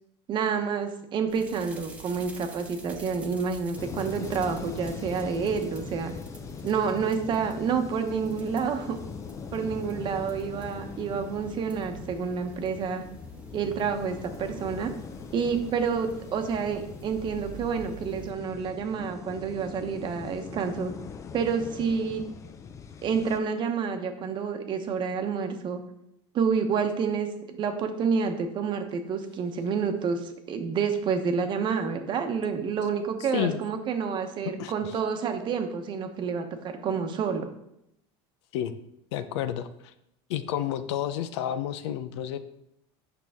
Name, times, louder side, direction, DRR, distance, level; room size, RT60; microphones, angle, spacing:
voice 1, 0.3-6.1 6.6-9.0 9.5-13.0 13.5-14.9 15.3-20.9 21.3-22.2 23.0-25.8 26.3-37.5, right 6 dB, 35° right, 6 dB, 0.9 m, -29 dB
sound 1, 1.3-18.3, right 3 dB, 10° right, 0.9 m, -48 dB
sound 2, 3.8-23.4, left 6 dB, 20° left, 0.4 m, -41 dB
voice 2, 34.6-34.9 38.5-38.7 39.1-39.9 40.3-42.4, left 10 dB, 90° left, 11 dB, 0.7 m, -30 dB
8.7 x 6.0 x 3.6 m, 0.80 s
supercardioid pair, 145°, 14 cm